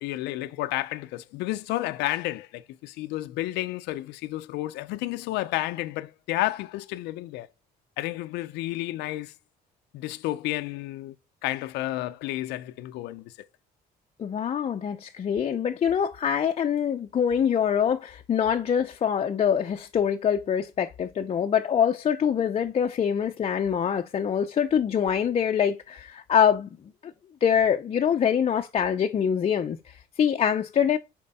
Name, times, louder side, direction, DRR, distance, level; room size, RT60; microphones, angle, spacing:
voice 1, 0.0-7.5 8.0-9.3 9.9-11.2 11.4-13.3, left 16 dB, 90° left, 0.5 m, -31 dB
voice 2, 14.2-26.7 27.0-27.1 27.4-31.0, left 8 dB, 35° left, 0.5 m, -24 dB
7.5 x 4.5 x 4.1 m
cardioid pair, 110°, 17 cm